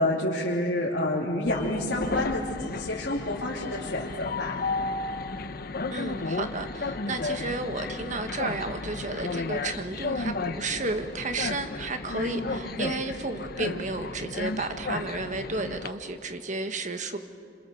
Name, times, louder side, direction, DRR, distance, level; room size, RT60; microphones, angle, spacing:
voice 1, 0.0-4.5 12.1-12.6, left 1 dB, 75° left, -5 dB, 3.1 m, -29 dB
Train, 1.5-15.9, left 3 dB, 55° left, 0.8 m, -33 dB
voice 2, 5.9-17.2, right 3 dB, 45° right, 7 dB, 1.5 m, -32 dB
26.5 x 26.5 x 7.1 m, 2.5 s
head